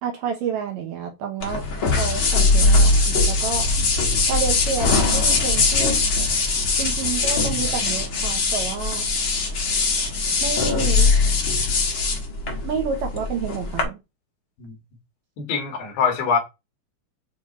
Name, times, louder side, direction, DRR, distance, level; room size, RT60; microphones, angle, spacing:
voice 1, 0.0-1.6 1.9-3.7 4.2-6.0 6.8-9.1 10.4-11.1 12.6-14.0, right 6 dB, 70° right, 2.4 m, -29 dB
sound 1, 1.4-13.8, left 3 dB, 50° left, 1.6 m, -21 dB
voice 2, 15.4-16.4, left 6 dB, 75° left, 4.0 m, -23 dB
8.1 x 3.1 x 4.4 m
omnidirectional pair, 4.7 m